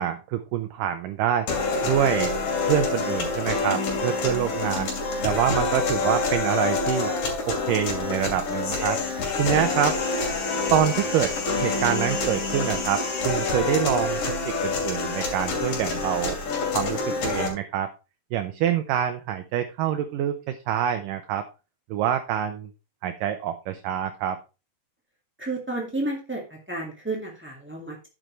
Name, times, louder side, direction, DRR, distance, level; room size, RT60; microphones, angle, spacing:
voice 1, 0.0-1.5 1.8-2.3 2.6-4.9 5.2-7.1 7.5-9.0 9.3-10.0 10.7-16.4 16.7-17.9 18.3-21.5 21.9-22.7 23.0-24.4, right 10 dB, 75° right, 8 dB, 2.2 m, -26 dB
sound 1, 1.5-17.5, left 4 dB, 65° left, 4.3 m, -27 dB
voice 2, 25.4-28.0, right 2 dB, 15° right, -1 dB, 0.4 m, -31 dB
10.5 x 7.6 x 3.2 m, 0.29 s
omnidirectional pair, 4.4 m